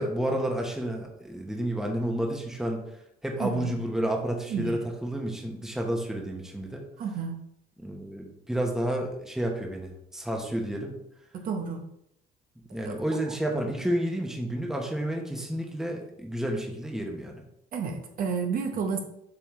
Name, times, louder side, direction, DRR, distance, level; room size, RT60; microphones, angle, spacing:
voice 1, 0.0-2.8 3.2-6.8 7.8-11.0 12.7-17.4, right 1 dB, 5° right, 1 dB, 1.1 m, -30 dB
voice 2, 3.4-3.7 4.5-4.8 7.0-7.4 11.3-11.8 12.7-13.0 17.7-19.0, right 5 dB, 55° right, 4 dB, 1.0 m, -31 dB
7.3 x 4.4 x 3.2 m, 0.76 s
cardioid pair, 110°, 17 cm